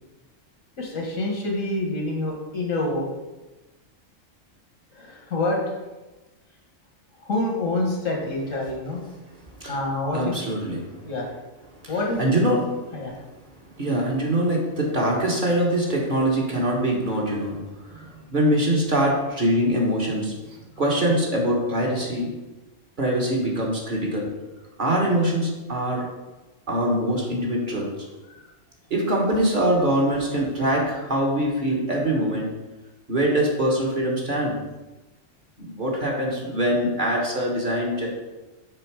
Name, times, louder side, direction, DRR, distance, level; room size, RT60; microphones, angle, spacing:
voice 1, 0.8-3.1 4.9-5.6 7.3-9.0 9.7-10.3 11.1-11.3 11.9-12.2 12.9-13.1, left 2 dB, 90° left, 0 dB, 1.8 m, -26 dB
voice 2, 10.1-11.0 11.8-12.6 12.9-13.0 13.8-22.3 23.0-24.3 24.8-26.0 26.7-27.9 28.9-32.5 33.1-34.6 35.6-38.1, right 1 dB, 40° right, -2 dB, 1.4 m, -23 dB
6.8 x 3.8 x 4.8 m, 1.1 s
omnidirectional pair, 1.3 m